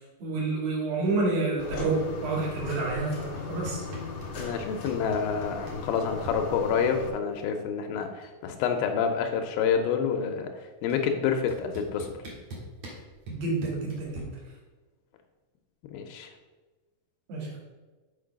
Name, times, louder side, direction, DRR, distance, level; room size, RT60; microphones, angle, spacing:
voice 1, 0.2-3.8 13.3-14.3 17.3-17.6, right 3 dB, 80° right, -3 dB, 3.6 m, -29 dB
sound 1, 1.6-7.1, left 4 dB, 60° left, 1.8 m, -37 dB
sound 2, 3.4-4.3 4.6-6.4 7.6-7.7 8.0-8.4 8.7-10.0 10.9-11.0 11.5-14.2, right 1 dB, 50° right, 2.0 m, -43 dB
voice 2, 4.4-10.5 10.8-12.1 15.9-16.3, left 6 dB, 90° left, 5 dB, 2.5 m, -28 dB
6.6 x 5.2 x 5.1 m, 1.3 s
omnidirectional pair, 4.1 m